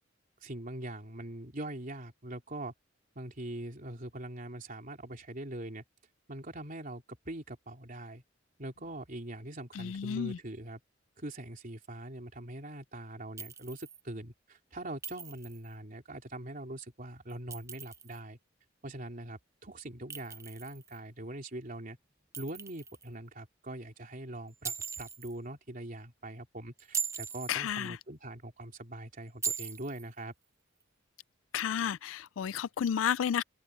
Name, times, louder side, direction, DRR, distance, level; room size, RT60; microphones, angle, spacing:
voice 1, 0.4-2.7 3.1-5.8 6.3-8.2 8.6-10.8 11.2-18.4 18.8-22.0 22.4-30.3, right 1 dB, 45° right, 3.4 m, -42 dB
voice 2, 9.7-10.4 27.5-28.0 31.5-33.4, left 8 dB, 80° left, 0.4 m, -32 dB
Chink clink, 13.4-14.0 15.0-15.7 17.3-18.2 20.1-21.0 22.3-23.1 24.6-25.3 26.8-27.6 29.4-30.1, right 6 dB, 15° right, 0.5 m, -39 dB
head